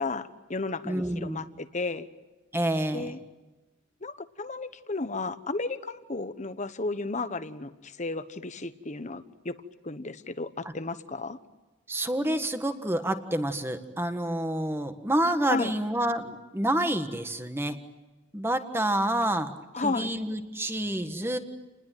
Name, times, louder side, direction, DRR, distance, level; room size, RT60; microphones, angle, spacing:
voice 1, 0.0-2.1 2.9-3.2 4.0-9.5 9.8-11.4 15.5-15.7 19.7-20.1, left 3 dB, 35° left, 12 dB, 1.2 m, -33 dB
voice 2, 0.8-1.4 2.5-3.1 10.6-10.7 11.9-17.8 18.3-21.4, right 1 dB, 10° right, 8 dB, 1.6 m, -28 dB
29.5 x 20.5 x 9.3 m, 1.2 s
head